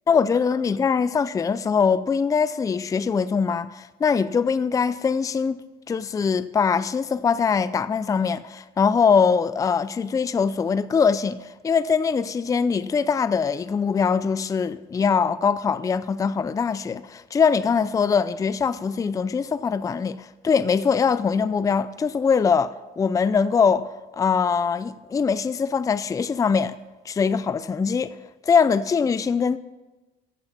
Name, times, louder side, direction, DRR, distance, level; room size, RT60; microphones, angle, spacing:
voice 1, 0.1-5.6 5.9-11.4 11.6-26.8 27.1-28.2 28.4-29.6, left 6 dB, 20° left, 0.4 m, -22 dB
14.0 x 5.7 x 6.8 m
cardioid pair, 110°, 17 cm